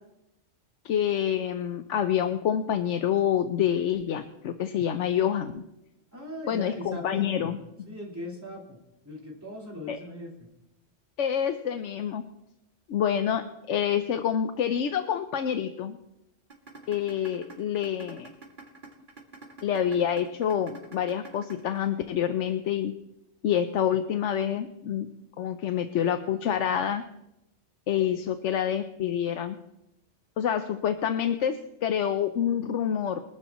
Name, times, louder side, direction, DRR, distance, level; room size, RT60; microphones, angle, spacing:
voice 1, 0.8-5.6 6.5-7.6 9.9-10.0 11.2-12.2 12.9-16.0 16.9-18.3 19.6-22.9 23.4-25.1 25.4-27.0 27.9-29.6 30.4-33.2, left 9 dB, 80° left, 8 dB, 1.0 m, -27 dB
voice 2, 6.1-7.6 7.9-10.3, left 1 dB, 15° right, -5 dB, 4.2 m, -39 dB
sound 1, 16.5-22.5, right 3 dB, 45° right, 2.5 m, -46 dB
24.0 x 11.0 x 3.1 m, 0.90 s
omnidirectional pair, 1.2 m